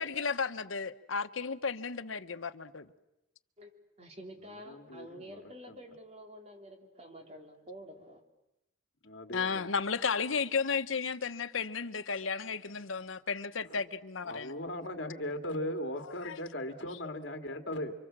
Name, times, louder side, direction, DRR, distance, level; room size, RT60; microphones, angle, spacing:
voice 1, 0.0-2.9 9.3-14.5 16.0-16.4, left 5 dB, 90° left, 1.1 m, -34 dB
voice 2, 4.0-8.2, equal, 30° right, 3.4 m, -49 dB
voice 3, 4.7-5.4 5.7-5.8 9.0-9.7 13.7-13.8 14.2-17.9, left 1 dB, 65° left, 2.2 m, -38 dB
29.0 x 25.0 x 7.5 m
head